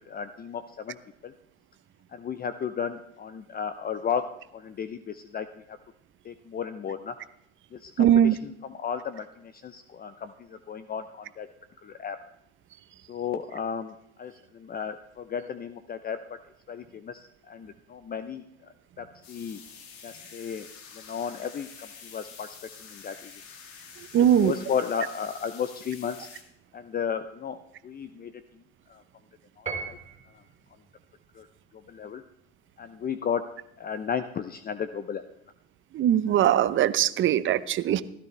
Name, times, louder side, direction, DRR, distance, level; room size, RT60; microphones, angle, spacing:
voice 1, 0.1-1.0 1.2-1.3 2.1-4.3 4.5-5.8 6.2-7.2 7.7-11.5 11.8-12.2 13.1-16.4 16.7-18.4 19.0-19.6 20.0-20.7 20.9-22.6 22.8-23.3 24.4-26.3 26.7-27.6 27.8-28.4 28.9-29.0 29.6-30.0 30.3-30.4 31.3-31.5 31.9-32.2 32.8-33.5 33.8-35.2, left 7 dB, 30° left, 11 dB, 0.7 m, -34 dB
voice 2, 8.0-8.3 24.1-24.5 35.9-38.0, right 10 dB, 40° right, 15 dB, 0.8 m, -21 dB
sound 1, 19.2-26.4, left 6 dB, 70° left, 2.5 m, -47 dB
Piano, 29.7-30.6, right 5 dB, 20° right, 3.0 m, -36 dB
16.0 x 13.0 x 3.4 m, 0.79 s
hypercardioid pair, 80°, 32 cm